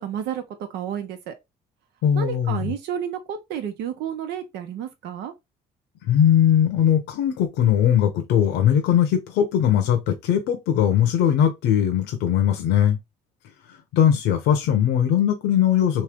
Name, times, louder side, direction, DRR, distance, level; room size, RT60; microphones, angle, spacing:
voice 1, 0.0-1.3 2.1-5.3, right 9 dB, 85° right, 0.9 m, -31 dB
voice 2, 2.0-2.7 6.1-13.0 13.9-16.0, left 9 dB, 85° left, 0.9 m, -20 dB
3.2 x 2.8 x 3.6 m
cardioid pair, 110°, 17 cm